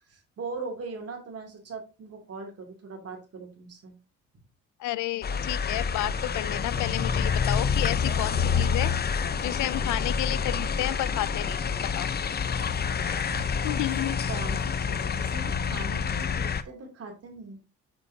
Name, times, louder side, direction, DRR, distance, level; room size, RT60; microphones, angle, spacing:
voice 1, 0.0-3.9 14.3-17.6, right 3 dB, 55° right, 2.8 m, -40 dB
voice 2, 4.8-8.9 9.4-12.1 13.6-14.2, left 16 dB, 75° left, 0.4 m, -31 dB
sound 1, 5.2-16.6, left 6 dB, 35° left, 0.6 m, -28 dB
sound 2, 6.0-7.0 8.3-9.3 10.5-11.5 13.3-14.1 15.5-16.3, right 8 dB, 90° right, 1.1 m, -47 dB
8.0 x 5.2 x 2.7 m
cardioid pair, 90°, 30 cm